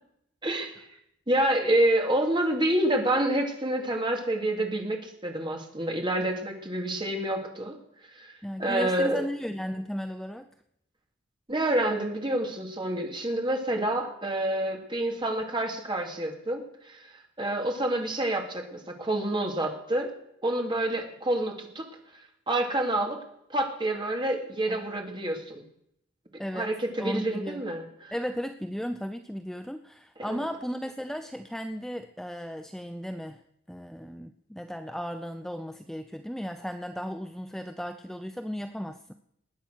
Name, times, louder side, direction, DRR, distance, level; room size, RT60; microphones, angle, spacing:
voice 1, 0.4-0.9 1.3-7.8 8.1-9.2 11.5-17.1 17.4-20.1 20.4-21.9 22.5-23.2 23.5-25.6 26.5-28.1 30.2-30.4, right 1 dB, 25° right, 2 dB, 2.6 m, -28 dB
voice 2, 8.4-10.5 24.7-24.8 26.4-26.7 27.0-27.6 28.1-33.4 33.7-39.1, equal, ahead, 7 dB, 0.6 m, -35 dB
20.5 x 9.1 x 6.5 m, 0.75 s
head